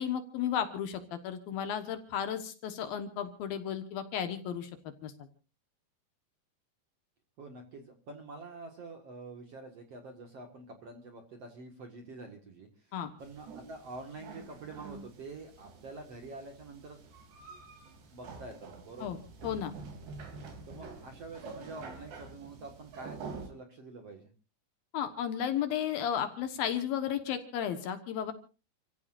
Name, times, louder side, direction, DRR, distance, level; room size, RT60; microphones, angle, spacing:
voice 1, 0.0-4.7 5.0-5.1 12.9-13.1 19.0-19.2 19.4-19.7 24.9-28.3, left 9 dB, 70° left, 8 dB, 2.9 m, -33 dB
voice 2, 7.4-17.1 18.1-19.1 20.7-24.3, right 3 dB, 50° right, 4 dB, 2.2 m, -47 dB
sound 1, 13.2-23.5, right 4 dB, 85° right, 5.2 m, -47 dB
29.5 x 15.5 x 2.6 m, 0.34 s
omnidirectional pair, 4.8 m